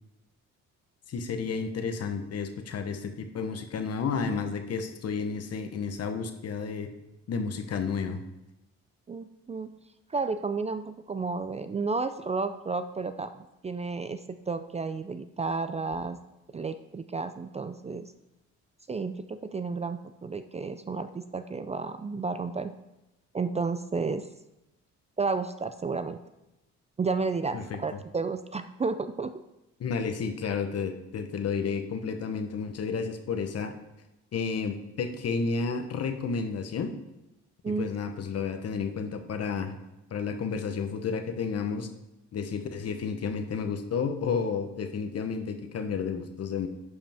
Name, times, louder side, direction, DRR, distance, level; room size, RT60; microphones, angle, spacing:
voice 1, 1.1-6.9 7.3-8.2 27.5-27.8 29.8-33.7 34.3-36.9 37.7-39.7 40.1-41.9 42.3-46.7, left 5 dB, 55° left, 8 dB, 1.0 m, -31 dB
voice 2, 9.1-9.7 10.1-13.3 13.6-16.2 16.5-18.1 18.9-22.7 23.3-24.3 25.2-26.2 27.0-29.3 37.6-37.9, right 4 dB, 20° right, 10 dB, 0.4 m, -32 dB
11.0 x 5.0 x 3.5 m, 0.94 s
cardioid pair, 90°, 30 cm